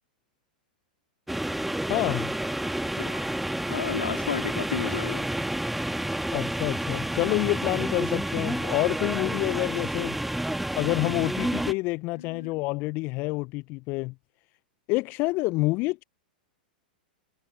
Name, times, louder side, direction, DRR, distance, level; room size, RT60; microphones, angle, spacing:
sound 1, 1.3-11.7, right 1 dB, 5° right, 2.0 m, -30 dB
voice 1, 1.9-2.3 6.3-10.2 10.7-14.1 14.9-16.0, left 23 dB, 40° left, 1.0 m, -28 dB
voice 2, 3.7-5.3 12.1-12.5, left 7 dB, 75° left, 4.1 m, -32 dB
figure-of-eight pair, 100°, 5 cm